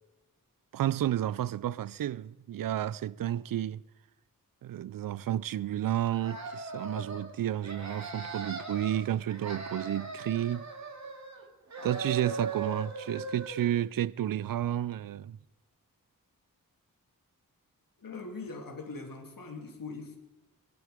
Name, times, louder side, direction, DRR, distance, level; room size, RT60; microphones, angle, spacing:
voice 1, 0.7-3.8 4.6-10.6 11.8-15.4, right 12 dB, 75° right, 0.5 m, -31 dB
sound 1, 6.1-7.3 7.6-9.0 9.3-11.4 11.7-13.7, right 3 dB, 55° right, 2.8 m, -39 dB
voice 2, 18.0-20.2, left 3 dB, 75° left, 2.6 m, -41 dB
22.0 x 11.0 x 5.1 m
wide cardioid pair, 110°, 34 cm